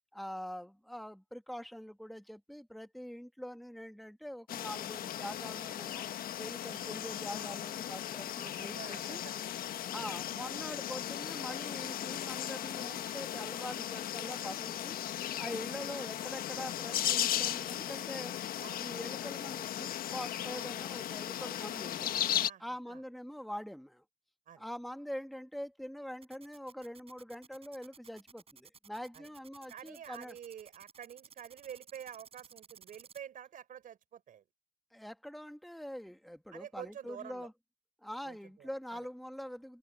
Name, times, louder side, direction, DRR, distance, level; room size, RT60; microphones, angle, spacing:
voice 1, 0.1-6.0 6.4-9.2 9.9-15.0 15.4-18.4 18.8-22.1 22.6-24.0 24.6-30.4 34.9-37.5 38.0-39.8, equal, ahead, 1.8 m, -44 dB
sound 1, 4.5-22.5, left 11 dB, 60° left, 1.3 m, -37 dB
voice 2, 8.3-9.4 10.0-10.2 18.6-18.9 22.4-23.0 24.5-24.6 29.1-29.3 29.7-34.4 36.5-37.5 38.2-39.0, right 9 dB, 50° right, 5.0 m, -48 dB
sound 2, 26.2-33.2, right 6 dB, 35° right, 7.2 m, -56 dB
cardioid pair, 110°, 17 cm